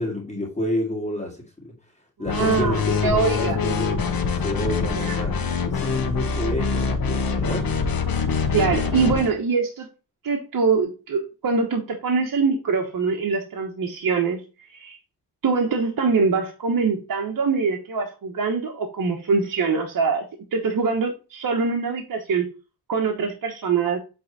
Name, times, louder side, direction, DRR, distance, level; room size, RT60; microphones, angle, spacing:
voice 1, 0.0-1.7 2.2-4.0 4.4-5.4 5.7-7.7, left 1 dB, 20° left, 2.1 m, -29 dB
sound 1, 2.3-9.3, left 5 dB, 65° left, 1.3 m, -24 dB
voice 2, 2.3-3.6 5.0-5.2 8.5-9.9 10.2-14.4 14.7-15.0 15.4-20.3 20.5-22.5 22.9-24.0, right 5 dB, 60° right, 1.3 m, -23 dB
8.9 x 3.5 x 4.1 m
wide cardioid pair, 150°, 38 cm